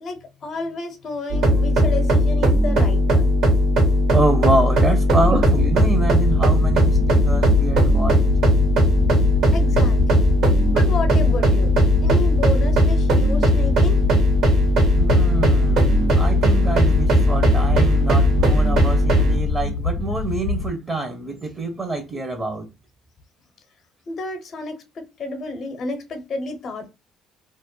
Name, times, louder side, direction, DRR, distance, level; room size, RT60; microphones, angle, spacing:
voice 1, 0.0-3.3 9.5-10.3 10.7-11.7 12.0-14.0 24.1-26.9, left 2 dB, 50° left, 0.6 m, -31 dB
sound 1, 1.3-19.4, equal, 65° right, 0.9 m, -17 dB
voice 2, 4.1-8.3 14.9-22.7, right 2 dB, 25° right, 0.6 m, -26 dB
sound 2, 5.1-20.7, left 3 dB, 90° left, 0.3 m, -26 dB
2.3 x 2.1 x 2.9 m
hypercardioid pair, 60°, 0 cm